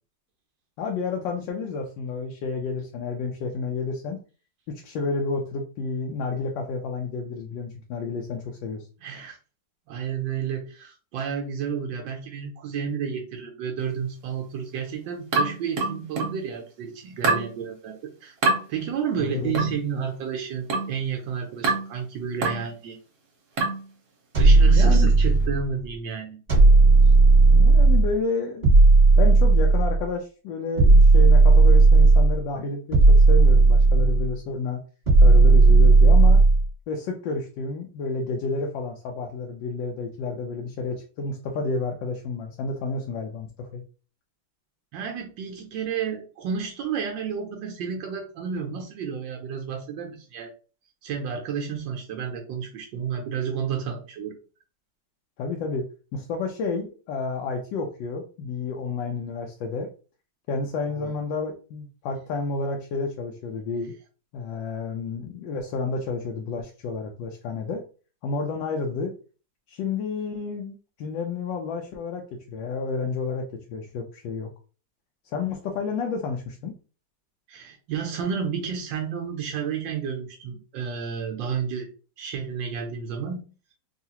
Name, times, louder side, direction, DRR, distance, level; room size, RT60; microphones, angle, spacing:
voice 1, 0.8-4.2 4.7-8.8 19.2-19.6 24.7-25.1 27.5-28.7 29.2-34.8 35.2-36.4 36.9-43.8 55.4-55.8 56.1-59.9 60.5-63.9 64.3-67.8 68.2-69.1 69.7-74.5 75.2-76.7, left 4 dB, 80° left, 2 dB, 1.3 m, -30 dB
voice 2, 9.0-9.4 9.9-18.3 18.7-23.0 24.4-26.4 44.9-50.5 51.0-54.4 61.0-61.1 77.5-81.9 82.2-83.4, right 7 dB, 80° right, 2 dB, 1.3 m, -31 dB
sound 1, 15.3-16.4 17.2-17.5 18.4-18.6 19.5-19.8 20.7-21.0 21.6-21.9 22.4-22.7 23.6-23.9, right 3 dB, 60° right, 1.4 m, -25 dB
sound 2, 24.3-25.7 26.5-28.1 28.6-30.0 30.8-32.4 32.9-34.3 35.1-36.7, right 3 dB, 30° right, 1.7 m, -14 dB
3.7 x 2.4 x 2.8 m, 0.36 s
omnidirectional pair, 2.0 m